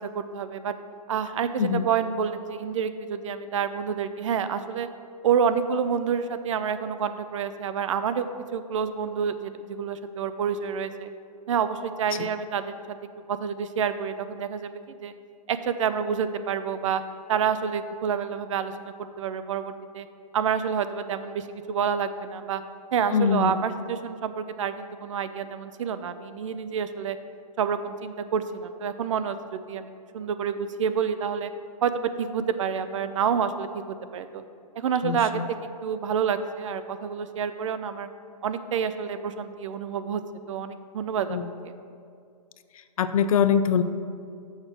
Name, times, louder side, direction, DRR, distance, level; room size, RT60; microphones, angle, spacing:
voice 1, 0.1-0.7 1.1-4.9 5.2-8.3 8.5-11.1 11.5-12.7 13.3-15.1 15.5-17.0 17.3-20.1 20.3-22.6 22.9-27.2 27.6-31.5 31.8-34.4 34.8-35.4 35.8-38.1 38.4-40.2 40.5-41.4, right 7 dB, 50° right, 11 dB, 0.5 m, -28 dB
voice 2, 23.1-23.6 35.0-35.5 41.3-41.5 42.7-43.8, left 7 dB, 60° left, 11 dB, 0.5 m, -24 dB
6.4 x 5.1 x 6.1 m, 2.3 s
hypercardioid pair, 160°, 21 cm